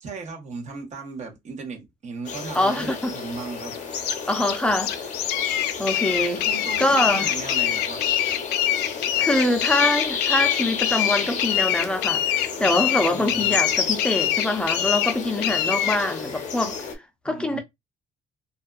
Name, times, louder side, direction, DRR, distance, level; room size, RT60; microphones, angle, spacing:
voice 1, 0.0-3.8 6.3-8.0 13.1-13.6 17.2-17.6, right 4 dB, 45° right, 1.1 m, -36 dB
sound 1, 2.3-17.0, left 6 dB, 45° left, 0.8 m, -32 dB
voice 2, 2.5-3.1 4.3-4.9 5.8-6.4 6.8-7.3 9.2-16.8 17.2-17.6, left 1 dB, 5° left, 0.6 m, -24 dB
sound 2, 3.6-16.0, left 11 dB, 75° left, 0.4 m, -24 dB
2.6 x 2.3 x 2.4 m
cardioid pair, 110°, 17 cm